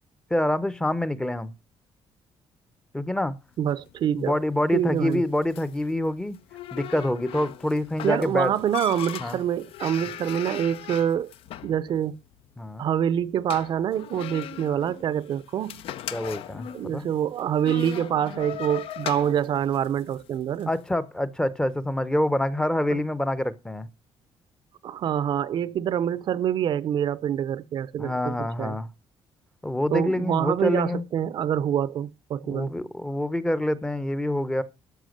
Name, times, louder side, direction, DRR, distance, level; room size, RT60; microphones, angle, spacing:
voice 1, 0.3-1.5 2.9-3.3 4.2-6.4 6.7-8.5 9.2-9.4 12.6-12.8 16.1-17.0 20.7-23.9 28.0-28.9 29.6-31.0 32.4-34.6, left 1 dB, 10° left, 0.7 m, -26 dB
sound 1, 3.5-20.8, left 11 dB, 70° left, 0.8 m, -40 dB
voice 2, 3.6-4.4 4.7-5.2 8.0-11.3 11.6-12.1 12.8-15.8 16.7-20.7 22.9-23.0 24.8-28.8 29.9-32.7, right 9 dB, 50° right, 0.6 m, -26 dB
13.0 x 5.7 x 6.5 m
cardioid pair, 155°, 10 cm